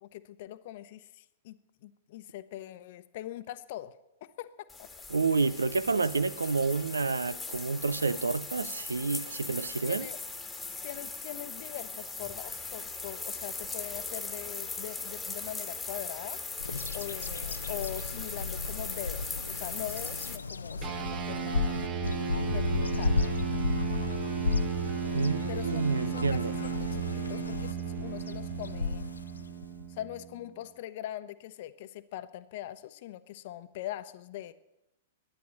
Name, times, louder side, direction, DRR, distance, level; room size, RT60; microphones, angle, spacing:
voice 1, 0.0-4.9 9.8-10.2 10.8-16.4 16.9-21.9 22.4-23.3 25.5-29.1 29.9-34.5, left 13 dB, 55° left, 0.9 m, -42 dB
sound 1, 4.7-20.4, left 4 dB, 10° left, 1.7 m, -39 dB
voice 2, 5.1-10.1 25.1-26.5, right 4 dB, 85° right, 0.6 m, -29 dB
Bird vocalization bird call bird song, 16.6-29.9, left 4 dB, 90° left, 0.6 m, -34 dB
sound 2, 20.8-30.5, right 9 dB, 35° right, 1.2 m, -35 dB
11.5 x 10.0 x 9.6 m
hypercardioid pair, 110°, 0 cm